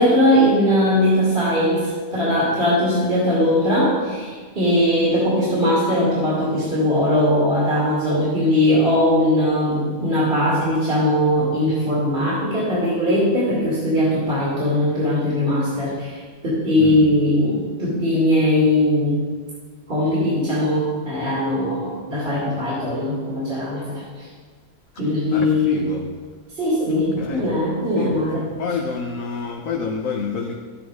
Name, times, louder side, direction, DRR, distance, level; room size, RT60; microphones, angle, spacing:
voice 1, 0.0-19.2 19.9-24.3 25.0-25.9 26.6-28.5, left 1 dB, 40° right, -8 dB, 2.9 m, -20 dB
voice 2, 25.3-26.0 26.8-27.5 27.9-30.5, left 5 dB, 75° left, 1 dB, 1.3 m, -28 dB
12.5 x 9.1 x 4.7 m, 1.5 s
omnidirectional pair, 1.4 m